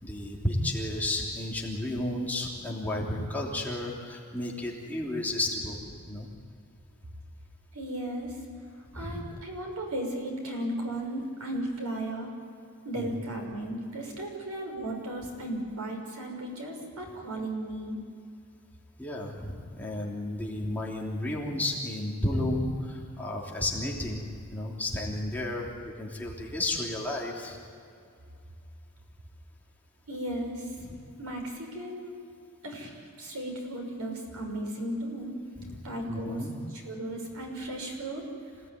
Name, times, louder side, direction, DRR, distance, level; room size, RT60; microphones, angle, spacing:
voice 1, 0.0-5.8 6.1-6.3 8.9-9.2 13.0-13.1 19.0-27.6 36.1-36.5, left 1 dB, 10° left, -3 dB, 3.2 m, -32 dB
voice 2, 7.7-8.4 8.9-12.3 12.8-18.0 30.1-30.7 31.2-32.1 32.6-35.4 35.8-38.2, right 1 dB, 90° right, 1 dB, 6.1 m, -35 dB
26.5 x 18.0 x 9.6 m, 2.4 s
head